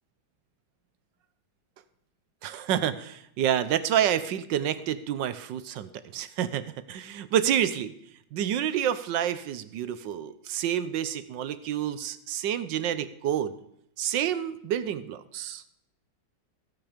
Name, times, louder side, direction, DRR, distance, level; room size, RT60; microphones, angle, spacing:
voice 1, 2.4-7.9 8.3-13.6 14.0-15.6, right 10 dB, 70° right, 14 dB, 1.4 m, -28 dB
15.5 x 9.0 x 5.1 m, 0.75 s
omnidirectional pair, 2.1 m